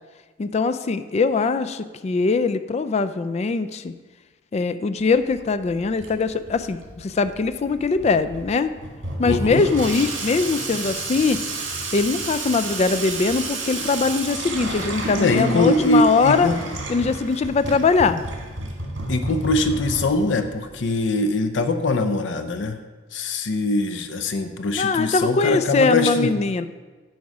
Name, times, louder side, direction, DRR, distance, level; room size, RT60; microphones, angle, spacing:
voice 1, 0.4-3.9 4.5-8.7 9.2-11.4 11.9-16.5 16.9-18.2 24.7-26.7, left 4 dB, 35° left, 12 dB, 0.3 m, -21 dB
Water tap faucet / Sink (filling or washing), 5.0-21.0, right 2 dB, 85° right, 1.9 m, -32 dB
voice 2, 9.2-9.7 15.1-16.6 19.1-22.8 23.1-26.3, left 2 dB, 75° left, 8 dB, 0.6 m, -22 dB
9.5 x 4.7 x 4.9 m, 1.3 s
head